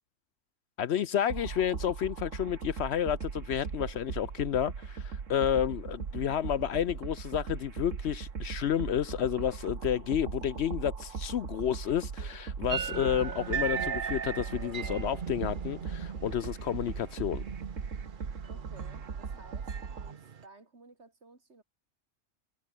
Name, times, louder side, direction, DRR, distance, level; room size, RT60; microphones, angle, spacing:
voice 1, 0.8-17.4, left 9 dB, 65° left, 0.9 m, -31 dB
sound 1, 1.3-20.1, right 6 dB, 80° right, 2.0 m, -39 dB
voice 2, 12.6-13.1 18.5-21.6, right 3 dB, 60° right, 3.5 m, -55 dB
sound 2, 12.7-20.4, right 7 dB, 45° right, 0.9 m, -38 dB
omnidirectional pair, 1.3 m